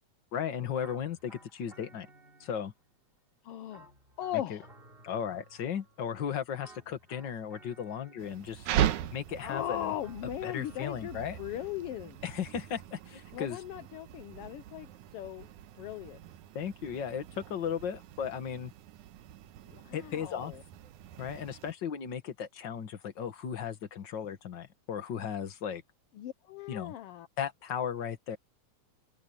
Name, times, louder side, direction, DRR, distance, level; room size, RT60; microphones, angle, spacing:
voice 1, 0.3-2.1 2.4-2.7 4.5-4.6 5.0-8.7 9.1-9.9 10.4-11.4 12.2-13.6 16.6-18.7 19.9-20.5 21.2-25.8 26.7-26.9 27.4-28.4, left 8 dB, 45° left, 1.9 m, -36 dB
sound 1, 0.8-2.9 3.7-6.1 6.6-8.7 9.5-11.9, right 2 dB, 20° right, 3.9 m, -57 dB
voice 2, 3.4-3.9 4.2-4.7 9.4-12.2 13.3-15.5 15.8-16.2 19.7-20.6 26.1-27.3, left 12 dB, 75° left, 1.4 m, -38 dB
sound 2, 8.2-21.7, right 11 dB, 85° right, 2.4 m, -39 dB
open air
omnidirectional pair, 3.4 m